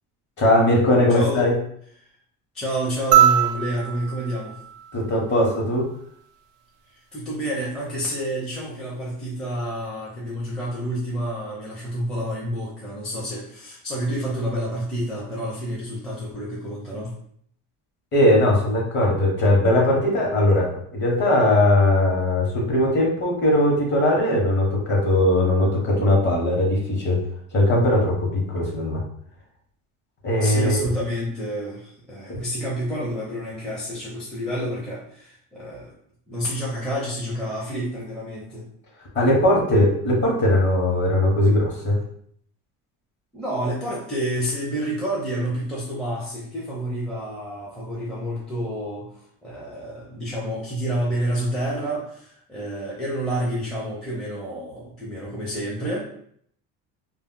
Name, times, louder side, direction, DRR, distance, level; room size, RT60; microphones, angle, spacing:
voice 1, 0.4-1.5 4.9-5.9 18.1-27.2 27.5-29.0 30.2-30.8 32.3-32.4 39.1-42.0, left 1 dB, 35° left, -2 dB, 0.8 m, -19 dB
voice 2, 1.1-1.5 2.5-4.6 7.1-17.2 30.4-36.0 36.3-38.7 43.3-49.1 49.4-56.0, equal, ahead, -6 dB, 0.4 m, -29 dB
sound 1, 3.1-5.7 7.3-7.4, right 11 dB, 65° right, 0.5 m, -22 dB
2.2 x 2.1 x 3.6 m, 0.64 s
cardioid pair, 140°, 34 cm